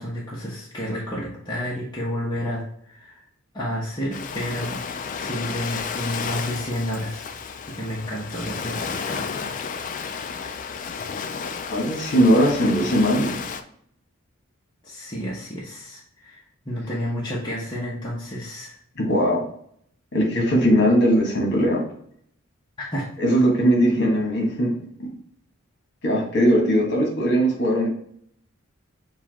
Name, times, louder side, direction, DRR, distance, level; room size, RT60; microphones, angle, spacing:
voice 1, 0.0-3.2 3.5-4.8 5.2-7.3 7.6-9.3 14.8-16.4 16.6-18.7 22.8-23.1, equal, 20° left, -6 dB, 0.9 m, -30 dB
Ocean, 4.1-13.6, left 6 dB, 40° left, 0.3 m, -32 dB
voice 2, 11.7-13.4 18.9-19.4 20.1-21.8 23.2-24.7 25.0-25.1 26.0-27.9, equal, 55° left, -1 dB, 1.4 m, -19 dB
6.9 x 2.4 x 2.8 m, 0.65 s
head